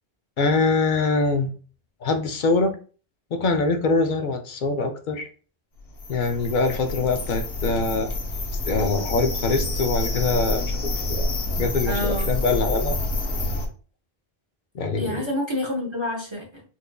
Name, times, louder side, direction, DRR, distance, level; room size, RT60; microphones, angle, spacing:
voice 1, 0.4-1.5 2.0-2.7 3.3-5.3 6.1-8.1 8.7-11.3 11.6-13.0 14.7-15.2, left 3 dB, 60° left, 6 dB, 0.6 m, -23 dB
sound 1, 5.9-13.7, left 2 dB, 80° left, 1.1 m, -28 dB
voice 2, 11.8-12.3 14.9-16.6, left 1 dB, 35° right, 0 dB, 0.6 m, -28 dB
4.4 x 2.5 x 2.2 m, 0.39 s
omnidirectional pair, 1.0 m